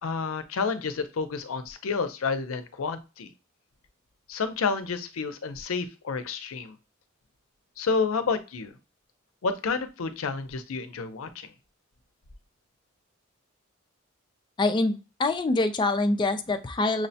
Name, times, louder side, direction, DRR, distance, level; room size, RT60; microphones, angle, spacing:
voice 1, 0.0-3.3 4.3-6.8 7.8-8.7 9.4-11.5, left 4 dB, 85° left, 9 dB, 0.5 m, -30 dB
voice 2, 14.6-17.1, left 2 dB, 20° left, 7 dB, 0.3 m, -25 dB
6.2 x 2.1 x 2.7 m, 0.30 s
head